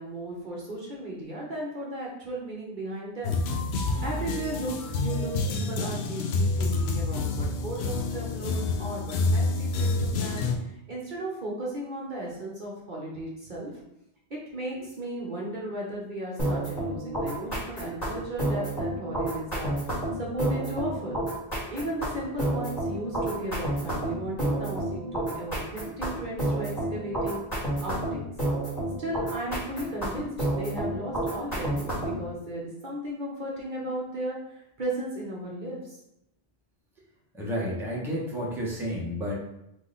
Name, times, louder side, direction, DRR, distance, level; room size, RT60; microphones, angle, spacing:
voice 1, 0.0-3.4 4.0-10.5 10.9-13.7 14.3-19.7 20.2-21.2 21.7-27.4 27.8-28.3 29.0-35.9, right 1 dB, 50° right, -4 dB, 1.0 m, -35 dB
sound 1, 3.2-10.6, left 3 dB, 75° left, 0.8 m, -28 dB
sound 2, 16.4-32.2, right 1 dB, 40° left, 1.8 m, -30 dB
voice 2, 37.3-39.3, equal, ahead, -5 dB, 1.0 m, -31 dB
3.7 x 3.2 x 3.9 m, 0.80 s
omnidirectional pair, 1.1 m